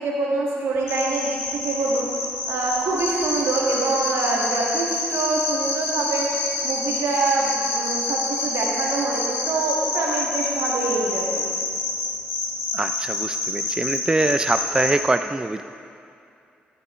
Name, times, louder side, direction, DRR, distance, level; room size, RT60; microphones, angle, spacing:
voice 1, 0.0-2.1 2.5-11.5, right 3 dB, 75° right, -2 dB, 1.7 m, -25 dB
sound 1, 0.9-14.9, left 3 dB, 85° left, 1.5 m, -27 dB
Cricket, 2.9-9.5, left 3 dB, 65° left, 1.6 m, -33 dB
voice 2, 12.7-15.6, right 2 dB, 15° right, 9 dB, 0.4 m, -23 dB
14.0 x 8.5 x 3.1 m, 2.5 s
supercardioid pair, 55°, 4 cm